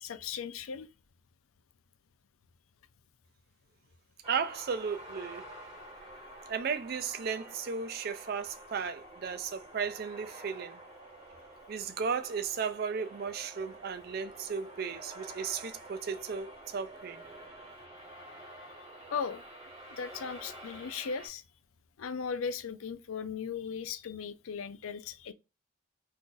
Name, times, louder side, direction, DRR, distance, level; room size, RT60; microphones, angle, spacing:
voice 1, 0.0-0.9 19.1-19.4 19.9-21.4 22.0-25.3, left 6 dB, 85° left, 0.4 m, -37 dB
sound 1, 4.2-21.3, right 1 dB, 30° right, 1.0 m, -49 dB
voice 2, 4.3-5.4 6.5-10.8 11.7-17.2, right 6 dB, 45° right, 0.3 m, -35 dB
2.5 x 2.5 x 3.7 m
head